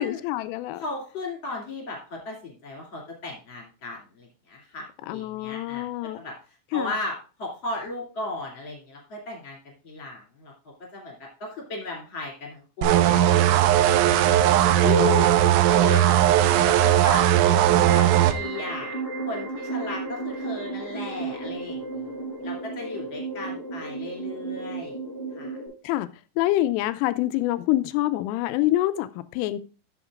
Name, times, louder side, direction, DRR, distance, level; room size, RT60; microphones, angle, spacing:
voice 1, 0.0-0.8 5.1-6.2 6.7-6.9 14.8-15.3 25.8-26.1 26.4-29.6, left 15 dB, 85° left, 3.1 m, -26 dB
voice 2, 0.8-5.8 6.1-6.3 6.7-9.6 9.8-10.5 10.9-14.5 15.0-15.1 15.7-18.9 19.3-22.1 22.4-25.0 25.3-25.6, left 2 dB, 35° left, 2.4 m, -36 dB
sound 1, 12.8-18.3, right 12 dB, 85° right, 3.4 m, -18 dB
sound 2, 17.7-25.7, right 3 dB, 30° right, 7.0 m, -34 dB
14.0 x 7.2 x 2.4 m
omnidirectional pair, 5.8 m